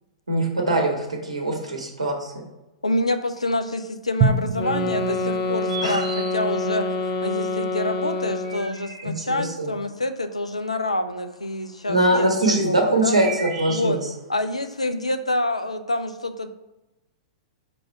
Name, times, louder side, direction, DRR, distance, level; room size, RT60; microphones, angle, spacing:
voice 1, 0.3-2.3 5.8-6.0 9.0-9.7 11.9-14.0, right 1 dB, 75° right, 1 dB, 1.4 m, -22 dB
voice 2, 2.8-6.9 7.2-13.2 13.7-14.0 14.3-16.5, left 1 dB, 80° left, 9 dB, 0.5 m, -27 dB
Drum, 4.2-7.2, right 5 dB, 25° right, 0.5 m, -27 dB
sound 1, 4.6-8.8, left 2 dB, 40° left, 0.6 m, -27 dB
sound 2, 5.5-6.8 8.1-9.5 10.6-11.4 12.4-14.4, right 5 dB, 45° right, 1.3 m, -36 dB
4.9 x 4.0 x 5.7 m, 0.98 s
figure-of-eight pair, 105°, 3 cm